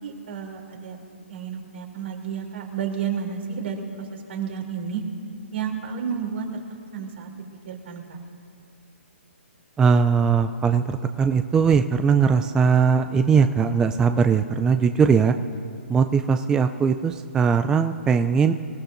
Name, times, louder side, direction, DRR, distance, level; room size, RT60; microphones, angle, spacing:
voice 1, 0.0-1.0 1.3-5.0 5.5-6.6 6.9-7.3 7.6-8.2, right 7 dB, 60° right, 1 dB, 3.0 m, -31 dB
voice 2, 9.8-15.3 15.9-18.5, right 6 dB, 10° right, 8 dB, 0.3 m, -20 dB
26.0 x 14.5 x 2.6 m, 2.5 s
hypercardioid pair, 145°, 7 cm